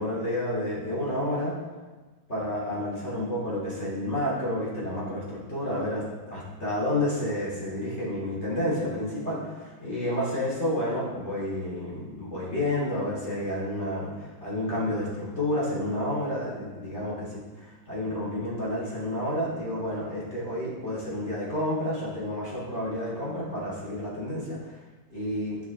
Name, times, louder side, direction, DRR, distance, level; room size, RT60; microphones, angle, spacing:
voice 1, 0.0-1.5 2.3-24.8 25.1-25.6, left 1 dB, 35° left, -7 dB, 3.4 m, -30 dB
11.0 x 7.6 x 3.6 m, 1.3 s
omnidirectional pair, 2.1 m